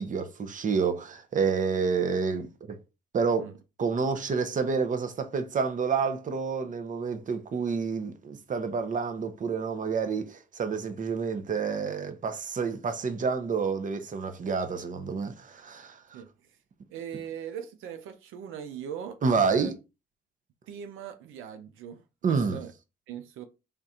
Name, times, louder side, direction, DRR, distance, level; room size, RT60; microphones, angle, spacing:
voice 1, 0.0-2.8 3.1-3.5 3.8-16.2 19.2-19.7 22.2-22.6, right 5 dB, 40° right, 0.8 m, -29 dB
voice 2, 16.9-19.7 20.7-22.0 22.3-22.7 23.1-23.4, right 8 dB, 90° right, 0.6 m, -40 dB
3.6 x 2.5 x 4.2 m
cardioid pair, 90°, 20 cm